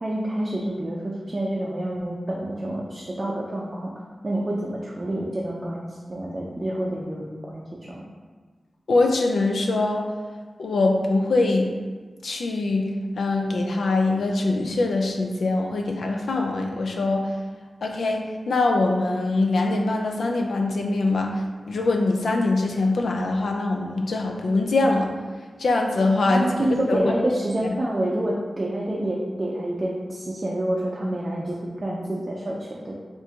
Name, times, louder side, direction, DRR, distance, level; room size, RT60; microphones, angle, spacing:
voice 1, 0.0-3.9 4.2-8.0 26.2-33.0, right 1 dB, 30° right, -5 dB, 0.5 m, -28 dB
voice 2, 8.9-10.1 10.6-11.7 12.2-17.3 17.8-25.1 25.6-26.5 26.9-27.0, left 2 dB, 85° left, 2 dB, 0.5 m, -23 dB
4.4 x 2.6 x 3.5 m, 1.5 s
wide cardioid pair, 105°, 0 cm